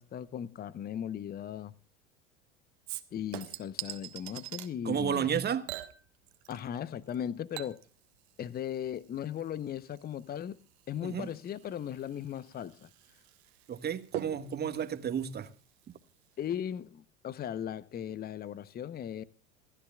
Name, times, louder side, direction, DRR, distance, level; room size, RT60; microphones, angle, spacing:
voice 1, 0.0-1.7 3.1-5.3 6.5-7.8 8.4-10.6 10.9-12.9 16.4-19.2, left 9 dB, 25° left, 0.9 m, -37 dB
Chink clink / Liquid, 2.9-4.7 5.7-6.8 7.1-16.1 16.4-16.5, right 16 dB, 65° right, 1.6 m, -46 dB
voice 2, 4.8-5.6 11.0-11.3 13.7-15.5, right 8 dB, 30° right, 1.7 m, -32 dB
28.0 x 13.5 x 2.4 m
figure-of-eight pair, 75°, 35 cm